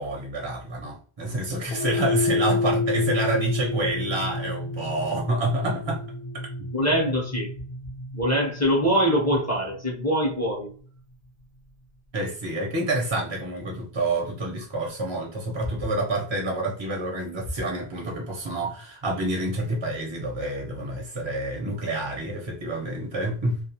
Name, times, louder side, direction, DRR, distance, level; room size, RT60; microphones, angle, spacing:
voice 1, 0.0-6.0 6.3-6.7 12.1-23.6, right 1 dB, 30° right, 0.5 m, -28 dB
sound 1, 1.7-10.1, left 3 dB, 60° left, 0.7 m, -30 dB
voice 2, 6.7-7.5 8.1-10.7, equal, 20° left, 0.6 m, -23 dB
2.3 x 2.3 x 2.8 m
omnidirectional pair, 1.1 m